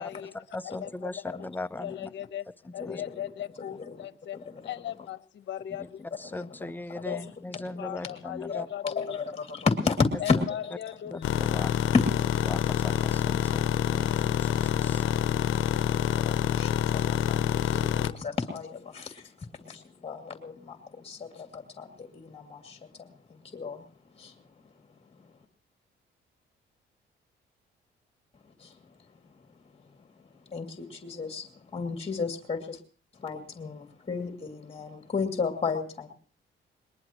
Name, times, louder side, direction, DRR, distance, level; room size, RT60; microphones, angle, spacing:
voice 1, 0.0-2.4 2.7-6.4 7.0-9.4 10.2-11.2, left 11 dB, 65° left, 1.0 m, -38 dB
voice 2, 0.5-2.1 2.6-3.0 5.8-5.9 6.2-8.7 10.4-10.5 11.1-11.8 12.5-15.0, left 2 dB, 10° left, 0.7 m, -39 dB
voice 3, 2.8-3.3 3.8-4.0 4.3-4.7 6.3-6.4 6.9-7.2 8.6-10.7 11.1-12.5 14.1-23.8 24.1-24.4 25.2-25.3 28.6-28.9 29.2-29.3 30.0-32.8 33.1-36.1, left 4 dB, 30° left, 2.5 m, -33 dB
sound 1, 11.2-18.1, left 11 dB, 85° left, 0.7 m, -27 dB
21.5 x 20.5 x 3.0 m
cardioid pair, 90°, 20 cm